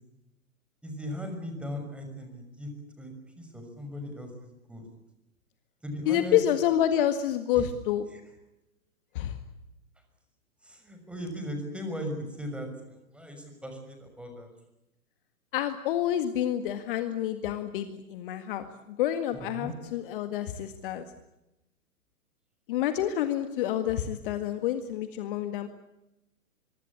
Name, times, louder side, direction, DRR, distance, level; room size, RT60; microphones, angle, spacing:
voice 1, 0.8-2.7 3.0-4.8 5.8-6.4 7.6-7.7 8.1-8.2 10.6-14.5 19.3-19.7, equal, 5° right, 5 dB, 6.2 m, -38 dB
voice 2, 6.1-8.1 9.1-9.4 15.5-21.1 22.7-25.7, left 11 dB, 40° left, 9 dB, 1.9 m, -28 dB
24.5 x 23.5 x 8.6 m, 0.91 s
figure-of-eight pair, 120°, 43 cm